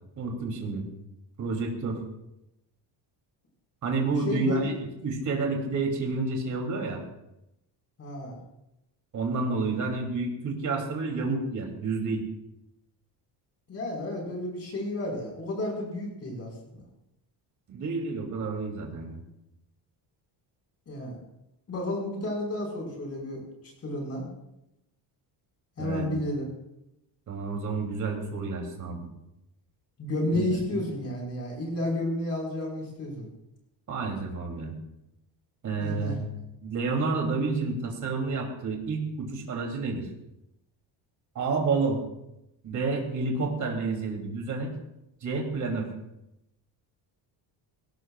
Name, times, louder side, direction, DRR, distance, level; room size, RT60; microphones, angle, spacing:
voice 1, 0.1-0.9 1.4-2.0 3.8-4.7 5.0-7.0 9.1-12.2 17.7-19.2 25.8-26.2 27.3-29.1 30.3-30.5 30.7-30.8 33.9-34.7 35.6-36.3 36.6-40.1 41.3-42.0 42.6-44.7 45.2-45.9, right 3 dB, 40° right, 1 dB, 3.2 m, -29 dB
voice 2, 4.3-4.7 8.0-8.4 13.7-16.8 20.9-21.2 21.7-23.4 23.8-24.3 25.8-26.5 30.0-33.2 35.8-36.1, left 1 dB, 30° left, -1 dB, 5.3 m, -31 dB
21.0 x 17.5 x 2.5 m, 0.87 s
cardioid pair, 175°, 45 cm